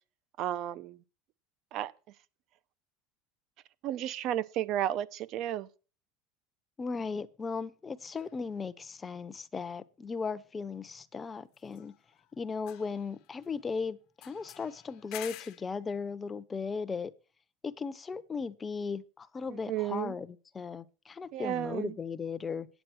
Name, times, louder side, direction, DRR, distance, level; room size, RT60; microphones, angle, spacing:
voice 1, 0.4-1.0 1.7-1.9 3.8-5.7 19.5-20.2 21.3-22.0, right 12 dB, 55° right, 0.7 m, -33 dB
voice 2, 6.8-11.9 12.3-17.1 17.6-22.7, left 5 dB, 20° left, 0.8 m, -37 dB
sound 1, 8.2-8.3 11.5-12.3 12.6-13.7 14.2-15.7, left 15 dB, 60° left, 1.1 m, -49 dB
9.2 x 7.6 x 6.0 m
supercardioid pair, 120°, 0 cm